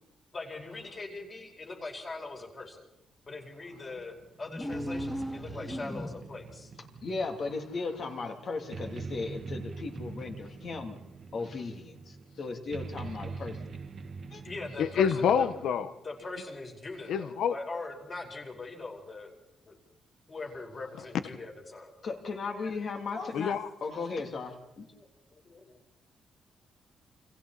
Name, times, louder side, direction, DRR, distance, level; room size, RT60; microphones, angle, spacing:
voice 1, 0.3-2.9 3.2-6.7 12.4-12.9 13.5-13.6 14.4-15.5 16.0-19.3 19.6-19.8 20.3-21.9 24.9-25.1 25.3-25.8, left 3 dB, 25° left, 1 dB, 4.9 m, -41 dB
sound 1, 3.9-15.7, right 4 dB, 40° right, 1.6 m, -44 dB
sound 2, 4.4-6.5, equal, 5° left, 1.0 m, -37 dB
voice 2, 7.0-11.0 11.3-13.6 14.3-14.4 22.0-23.5 23.8-24.8, left 4 dB, 40° left, 3 dB, 3.1 m, -36 dB
voice 3, 14.8-15.9 17.1-17.6 23.3-23.7, left 7 dB, 70° left, 10 dB, 1.3 m, -27 dB
29.0 x 26.5 x 4.3 m, 0.83 s
cardioid pair, 165°, 0 cm